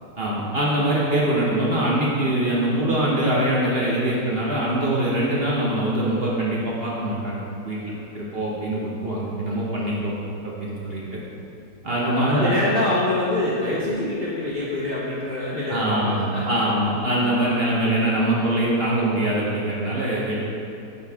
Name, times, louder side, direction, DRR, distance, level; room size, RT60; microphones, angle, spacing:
voice 1, 0.2-7.8 8.1-10.1 10.4-11.0 11.8-12.5 15.7-20.3, right 1 dB, 45° right, -5 dB, 0.9 m, -23 dB
voice 2, 12.0-16.4, left 1 dB, 50° left, -6 dB, 0.7 m, -25 dB
9.2 x 4.2 x 3.6 m, 2.7 s
omnidirectional pair, 1.8 m